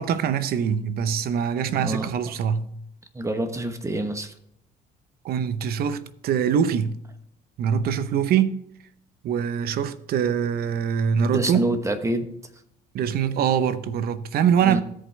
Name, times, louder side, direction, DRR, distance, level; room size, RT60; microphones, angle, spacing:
voice 1, 0.0-2.7 5.2-7.0 7.6-8.6 9.2-11.6 12.9-14.8, right 8 dB, 65° right, 0.7 m, -23 dB
voice 2, 1.7-2.1 3.1-4.3 11.3-12.3 14.6-14.8, right 1 dB, 15° right, 1.1 m, -26 dB
16.0 x 5.4 x 3.3 m
cardioid pair, 110°, 17 cm